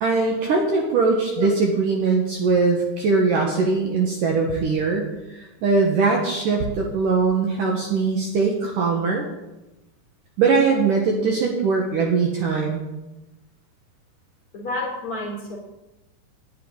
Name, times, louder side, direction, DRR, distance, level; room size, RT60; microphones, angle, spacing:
voice 1, 0.0-9.3 10.4-12.9, right 4 dB, 65° right, 0 dB, 2.4 m, -21 dB
voice 2, 14.5-15.6, left 2 dB, 35° left, -4 dB, 4.0 m, -30 dB
18.5 x 10.0 x 3.9 m, 1.0 s
omnidirectional pair, 5.0 m